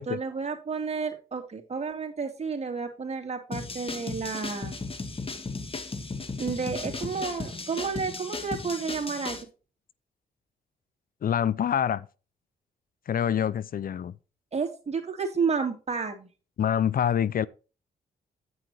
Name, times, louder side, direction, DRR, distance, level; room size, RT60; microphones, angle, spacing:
voice 1, 0.0-4.8 6.4-9.4 14.5-16.3, right 5 dB, 40° right, 3.3 m, -31 dB
sound 1, 3.5-9.4, left 3 dB, 35° left, 2.3 m, -36 dB
voice 2, 11.2-12.1 13.1-14.1 16.6-17.5, left 9 dB, 60° left, 0.6 m, -26 dB
9.6 x 9.6 x 3.0 m
cardioid pair, 70°, 17 cm